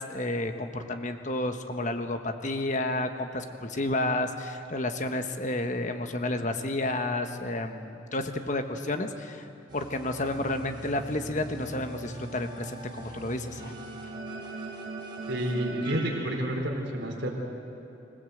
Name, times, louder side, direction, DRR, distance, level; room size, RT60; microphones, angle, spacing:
voice 1, 0.0-9.5 9.7-13.7, left 2 dB, 40° left, 7 dB, 1.2 m, -31 dB
sound 1, 9.7-16.3, right 2 dB, 25° right, 4.0 m, -40 dB
voice 2, 15.3-17.3, equal, 65° right, -1 dB, 4.0 m, -30 dB
26.0 x 17.0 x 7.9 m, 2.9 s
head